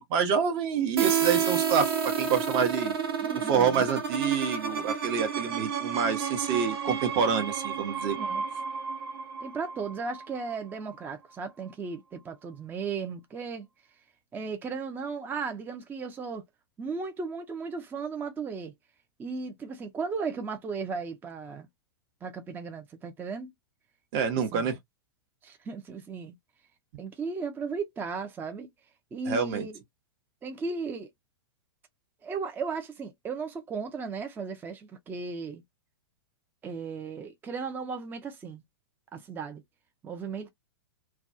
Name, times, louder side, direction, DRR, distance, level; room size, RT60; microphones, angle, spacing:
voice 1, 0.0-2.9 3.3-8.2 24.1-24.8 29.3-29.7, right 6 dB, 40° right, 0.8 m, -27 dB
sound 1, 1.0-10.5, right 7 dB, 70° right, 1.0 m, -31 dB
voice 2, 3.2-3.9 8.2-8.4 9.4-13.7 14.3-16.4 16.8-18.7 19.2-21.7 22.2-23.5 24.5-24.7 25.4-26.4 27.0-28.7 29.1-29.8 30.4-31.1 32.2-35.6 36.6-38.6 39.1-39.6 40.0-40.5, right 5 dB, 15° right, 0.4 m, -36 dB
2.2 x 2.2 x 2.5 m
hypercardioid pair, 110°, 13 cm